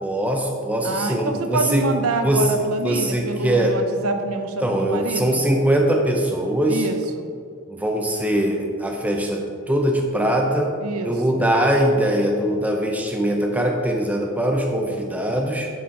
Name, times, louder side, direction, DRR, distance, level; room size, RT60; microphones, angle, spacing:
voice 1, 0.0-1.8 2.2-2.5 2.8-3.7 4.6-6.9 7.7-9.4 9.7-10.7 11.0-15.7, right 1 dB, 5° right, 1 dB, 0.6 m, -21 dB
voice 2, 0.8-5.4 6.7-7.3 10.8-11.4, right 2 dB, 80° right, 6 dB, 0.6 m, -26 dB
9.4 x 4.3 x 3.8 m, 2.2 s
head